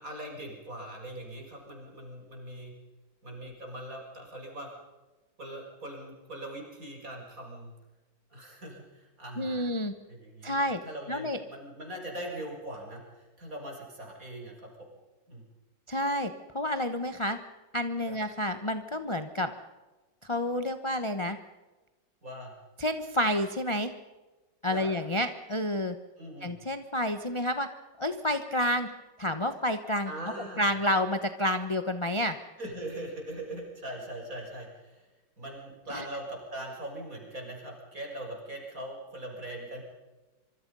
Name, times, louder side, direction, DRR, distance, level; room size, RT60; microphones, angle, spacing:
voice 1, 0.0-2.7 3.2-4.7 5.4-7.7 8.3-9.7 10.0-10.6 10.8-14.7 15.3-15.4 18.1-18.2 22.2-22.5 24.7-24.9 26.2-26.6 30.1-30.7 32.6-35.1 35.4-39.8, right 1 dB, 45° right, 1 dB, 6.8 m, -41 dB
voice 2, 9.4-9.9 10.4-10.8 11.1-11.4 15.9-17.4 17.7-19.5 20.2-21.4 22.8-23.9 24.6-26.0 26.4-27.7 28.0-28.9 29.2-30.1 30.6-32.4 35.9-36.0, left 1 dB, 20° left, 8 dB, 0.9 m, -29 dB
26.0 x 24.0 x 5.6 m, 1.2 s
omnidirectional pair, 2.0 m